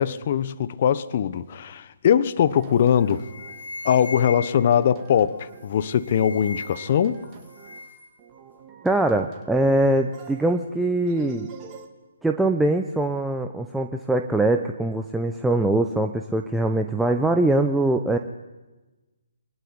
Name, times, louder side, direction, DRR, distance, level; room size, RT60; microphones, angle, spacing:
voice 1, 0.0-3.2 3.8-7.2, left 9 dB, 45° left, 1.2 m, -21 dB
sound 1, 2.4-3.7 4.1-5.8 6.2-7.9 8.2-9.9 10.1-11.9, right 7 dB, 25° right, 2.8 m, -46 dB
sound 2, 2.6-2.8 3.1-4.7 5.6-7.0 7.3-8.1, left 3 dB, 75° left, 7.1 m, -38 dB
voice 2, 8.8-11.5 12.2-18.2, right 2 dB, 5° right, 1.0 m, -22 dB
23.5 x 20.5 x 9.8 m
figure-of-eight pair, 140°, 0 cm